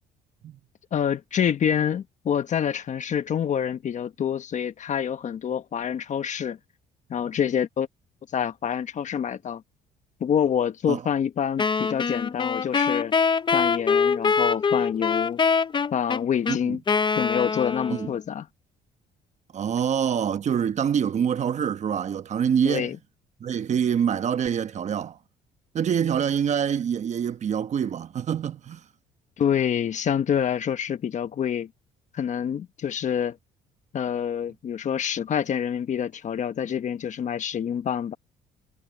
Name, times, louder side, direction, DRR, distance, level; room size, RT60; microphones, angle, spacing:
voice 1, 0.9-6.6 7.1-7.9 8.3-9.6 10.2-13.1 13.5-15.4 15.9-16.8 17.2-18.5 22.6-23.0 29.4-31.7 32.1-33.4 33.9-38.2, left 8 dB, 45° left, 1.2 m, -27 dB
Wind instrument woodwind instrument, 11.6-18.2, left 5 dB, 30° left, 0.7 m, -24 dB
voice 2, 19.5-22.9 23.4-25.2 25.7-28.8, right 8 dB, 45° right, 1.2 m, -25 dB
cardioid pair, 110°, 17 cm